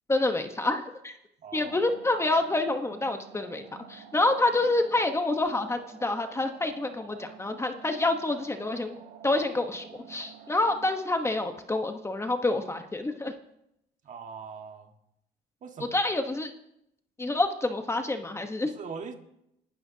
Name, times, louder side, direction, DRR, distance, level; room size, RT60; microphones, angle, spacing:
voice 1, 0.1-1.2 1.5-13.3 15.9-16.5 17.2-18.7, left 2 dB, 15° left, 6 dB, 1.1 m, -28 dB
voice 2, 1.4-1.8 14.0-14.9 15.6-15.9 18.7-19.1, right 6 dB, 50° right, 5 dB, 1.7 m, -41 dB
sound 1, 1.6-11.0, right 7 dB, 85° right, 2.4 m, -50 dB
27.5 x 12.5 x 2.8 m, 0.81 s
cardioid pair, 110°, 17 cm